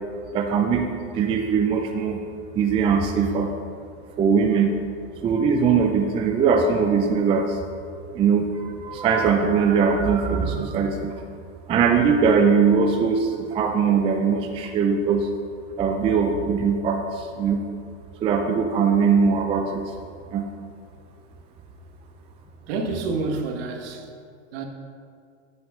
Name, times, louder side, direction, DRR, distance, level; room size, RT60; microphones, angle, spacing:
voice 1, 0.3-0.8 1.1-2.2 2.5-3.5 4.2-4.8 5.2-7.6 8.1-11.1 11.7-15.3 15.8-17.6 18.2-19.8 20.3-20.4, right 5 dB, 15° right, 3 dB, 0.4 m, -21 dB
voice 2, 22.7-24.2 24.5-24.7, right 3 dB, 55° right, 3 dB, 1.3 m, -28 dB
8.3 x 4.8 x 6.1 m, 2.3 s
supercardioid pair, 130°, 35 cm